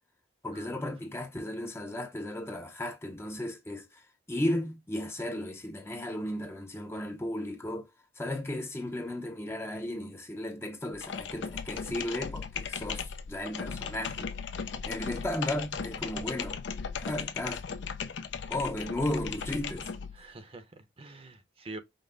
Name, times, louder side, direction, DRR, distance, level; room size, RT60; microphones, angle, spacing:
voice 1, 0.4-7.9 8.2-14.3 14.9-16.6 17.0-17.6 18.5-19.9, left 1 dB, 15° left, 0.5 m, -35 dB
sound 1, 10.9-20.2, left 6 dB, 80° left, 0.5 m, -37 dB
voice 2, 20.1-21.8, right 2 dB, 30° right, 0.6 m, -46 dB
5.3 x 2.0 x 3.8 m
head